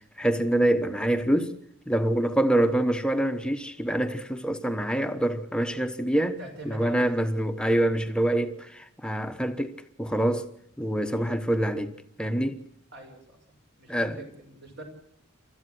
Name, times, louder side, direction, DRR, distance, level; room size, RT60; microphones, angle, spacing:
voice 1, 0.2-1.5 1.9-6.4 6.7-10.5 10.8-12.6 13.9-14.2, right 1 dB, 5° left, 1.1 m, -26 dB
voice 2, 6.4-7.3 11.0-11.3 12.9-13.4 13.8-14.8, right 1 dB, 55° right, 5.7 m, -44 dB
28.0 x 14.0 x 7.8 m
head